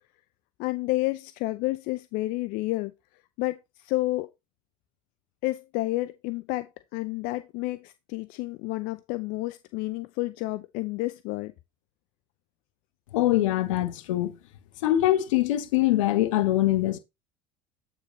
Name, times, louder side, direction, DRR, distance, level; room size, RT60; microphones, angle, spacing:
voice 1, 0.6-2.9 3.4-4.3 5.4-11.5, left 19 dB, 65° left, 0.5 m, -30 dB
voice 2, 13.1-14.4 14.8-17.0, left 14 dB, 80° left, 1.1 m, -23 dB
8.1 x 5.3 x 3.1 m
hypercardioid pair, 85°, 16 cm